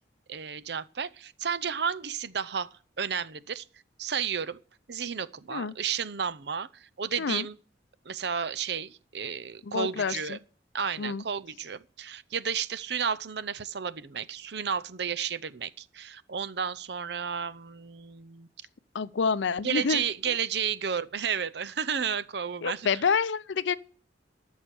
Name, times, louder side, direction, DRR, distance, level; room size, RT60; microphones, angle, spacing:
voice 1, 0.3-3.6 4.0-4.6 4.9-7.6 8.1-10.4 10.7-18.5 19.6-22.9, right 7 dB, 65° right, 0.7 m, -32 dB
voice 2, 9.6-10.4 11.0-11.2 18.9-20.4 22.6-23.7, left 5 dB, 80° left, 0.5 m, -28 dB
13.5 x 6.4 x 8.6 m
head